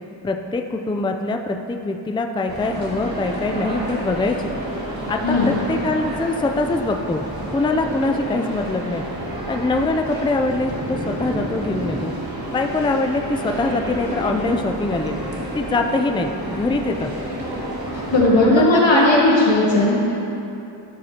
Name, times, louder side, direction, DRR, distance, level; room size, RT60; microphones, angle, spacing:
voice 1, 0.2-4.5 5.1-7.2 7.5-9.1 9.5-12.2 12.5-15.2 15.5-17.1 18.3-19.5, left 2 dB, 10° left, 4 dB, 0.4 m, -23 dB
sound 1, 2.5-18.2, right 1 dB, 55° right, 1.5 m, -30 dB
voice 2, 17.9-20.1, left 2 dB, 85° left, -5 dB, 1.9 m, -17 dB
12.5 x 6.4 x 2.9 m, 2.8 s
wide cardioid pair, 70°, 44 cm